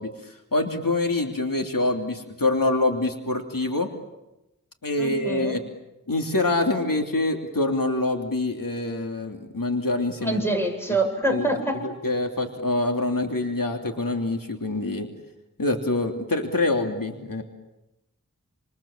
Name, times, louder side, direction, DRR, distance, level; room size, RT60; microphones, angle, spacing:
voice 1, 0.0-3.9 4.8-5.6 6.1-10.4 11.3-15.1 15.6-17.4, left 2 dB, 80° left, 3 dB, 3.0 m, -25 dB
voice 2, 5.0-5.6 10.2-11.8, right 1 dB, 5° left, 3 dB, 8.0 m, -25 dB
29.0 x 28.0 x 7.3 m, 0.94 s
wide cardioid pair, 45°, 33 cm